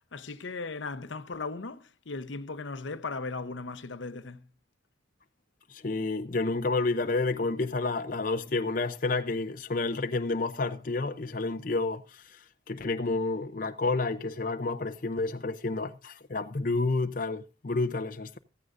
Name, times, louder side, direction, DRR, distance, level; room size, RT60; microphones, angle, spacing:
voice 1, 0.1-4.5, left 3 dB, 80° left, 0.8 m, -37 dB
voice 2, 5.7-18.4, left 3 dB, 45° left, 0.6 m, -30 dB
16.0 x 14.0 x 2.5 m
head